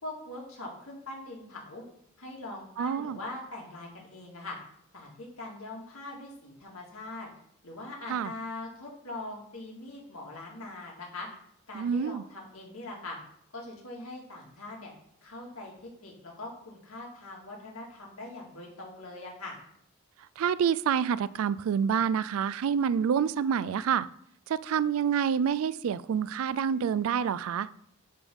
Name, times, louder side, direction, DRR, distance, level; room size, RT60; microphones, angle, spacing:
voice 1, 0.0-1.8 2.2-4.6 4.9-7.3 7.6-11.3 11.7-13.2 13.5-14.9 15.2-19.6, left 2 dB, 90° left, -1 dB, 2.2 m, -42 dB
voice 2, 2.8-3.2 8.1-8.3 11.7-12.2 20.4-24.1 24.5-27.7, right 7 dB, 80° right, 18 dB, 0.3 m, -27 dB
9.3 x 3.6 x 5.4 m, 0.68 s
head